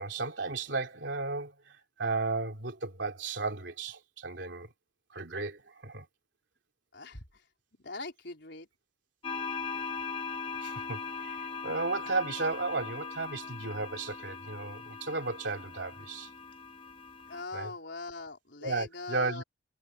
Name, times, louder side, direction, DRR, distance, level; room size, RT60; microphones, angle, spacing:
voice 1, 0.0-4.7 5.1-6.1 10.6-16.3 17.5-17.7 18.6-19.4, right 3 dB, 70° right, 3.4 m, -34 dB
voice 2, 6.9-7.4 7.8-8.7 17.3-19.4, left 3 dB, 65° left, 4.6 m, -41 dB
sound 1, 9.2-17.4, left 5 dB, 30° left, 1.8 m, -40 dB
head